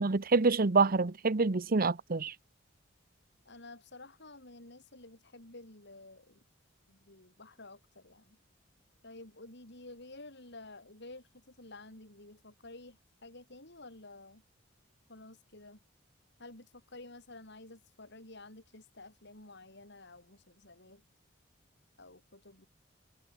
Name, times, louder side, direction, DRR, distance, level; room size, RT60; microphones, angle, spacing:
voice 1, 0.0-2.3, right 3 dB, 50° right, 0.9 m, -27 dB
voice 2, 3.4-6.4 6.9-8.4 9.0-14.4 15.1-15.8 16.4-21.0 22.0-22.7, left 2 dB, 60° left, 7.6 m, -51 dB
head